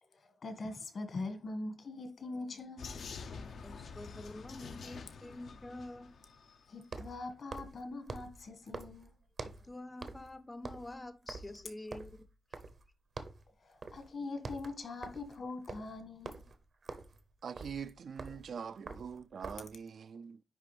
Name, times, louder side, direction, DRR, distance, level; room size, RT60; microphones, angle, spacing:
voice 1, 0.1-2.9 6.7-9.1 13.6-16.4, left 3 dB, 65° left, 1.6 m, -42 dB
Vehicle, 2.8-6.7, left 5 dB, 85° left, 0.7 m, -47 dB
voice 2, 3.6-6.1 9.6-12.6, left 1 dB, 15° left, 0.5 m, -47 dB
sound 1, 6.8-9.7 10.0-10.3 10.6-12.9 13.2-13.5 13.8-14.1 14.3-19.8, right 4 dB, 55° right, 0.7 m, -46 dB
voice 3, 17.4-20.4, right 6 dB, 75° right, 0.3 m, -43 dB
9.8 x 3.3 x 3.3 m
wide cardioid pair, 125°, 0 cm